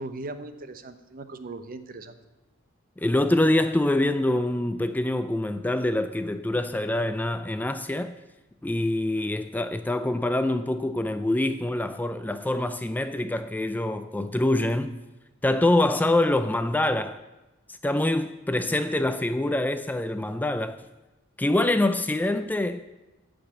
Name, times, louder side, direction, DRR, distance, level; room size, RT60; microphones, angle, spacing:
voice 1, 0.0-2.1, right 2 dB, 45° right, 0.9 m, -38 dB
voice 2, 3.0-8.1 8.6-15.0 15.4-17.2 17.8-20.8 21.4-22.8, left 1 dB, 10° left, 0.4 m, -25 dB
14.0 x 5.2 x 8.9 m
head